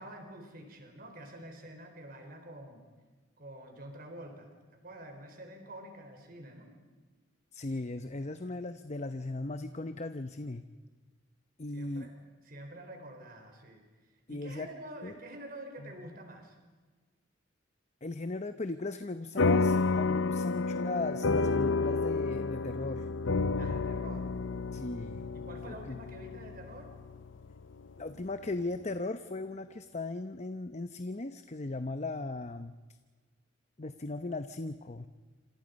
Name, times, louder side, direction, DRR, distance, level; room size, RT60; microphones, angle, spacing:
voice 1, 0.0-2.8 3.4-6.7 11.7-12.1 12.4-13.8 14.3-16.6 23.5-24.3 25.3-26.9, right 1 dB, 50° right, 4 dB, 4.4 m, -47 dB
voice 2, 7.5-10.6 11.6-12.1 14.3-14.7 15.0-15.1 15.8-15.9 18.0-23.1 24.7-25.2 25.7-26.0 28.0-32.7 33.8-35.1, left 2 dB, 35° left, 9 dB, 0.8 m, -37 dB
sound 1, 19.4-28.1, left 3 dB, 75° left, 0.6 m, -30 dB
28.0 x 26.5 x 5.3 m, 1.3 s
head